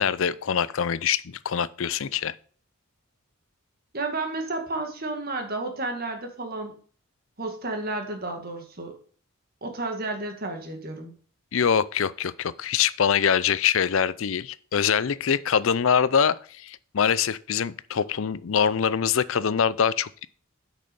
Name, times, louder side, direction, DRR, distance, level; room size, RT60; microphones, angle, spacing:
voice 1, 0.0-2.3 11.5-20.3, left 7 dB, 65° left, 0.5 m, -24 dB
voice 2, 3.9-6.8 7.4-9.0 9.6-11.1, right 2 dB, 45° right, 2.0 m, -32 dB
8.5 x 6.4 x 5.4 m
head